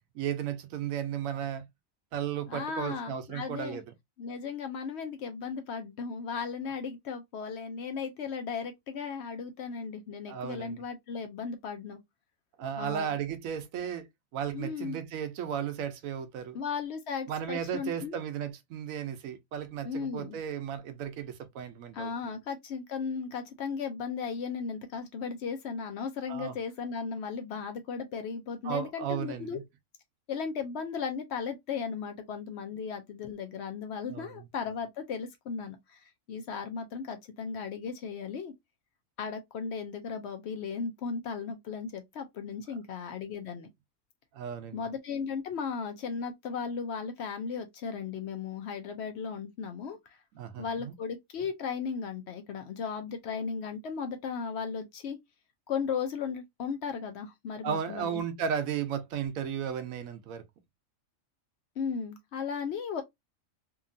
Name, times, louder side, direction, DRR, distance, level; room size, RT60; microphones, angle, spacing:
voice 1, 0.1-1.7 2.1-3.8 10.3-10.8 12.6-14.1 14.3-16.6 17.3-22.4 26.3-26.5 28.6-29.6 34.1-34.3 44.3-44.8 50.3-50.9 57.6-60.4, right 8 dB, 85° right, 1.0 m, -35 dB
voice 2, 2.5-3.8 4.2-12.0 12.8-13.2 14.5-15.0 16.5-18.2 19.8-20.4 21.9-29.6 30.3-38.5 39.2-43.7 44.7-50.2 50.6-55.2 55.7-58.2 61.8-63.0, left 6 dB, 65° left, 0.7 m, -36 dB
2.8 x 2.6 x 2.5 m
omnidirectional pair, 1.4 m